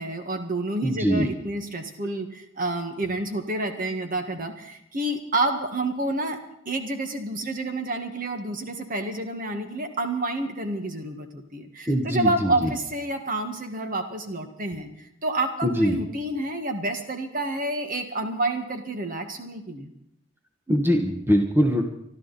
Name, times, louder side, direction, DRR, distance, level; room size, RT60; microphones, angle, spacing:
voice 1, 0.0-6.4 6.6-19.9, right 2 dB, 45° right, 6 dB, 1.7 m, -29 dB
voice 2, 0.8-1.3 11.9-12.7 15.6-16.0 20.7-21.9, equal, 10° right, 4 dB, 1.3 m, -22 dB
24.5 x 12.5 x 4.2 m, 0.79 s
head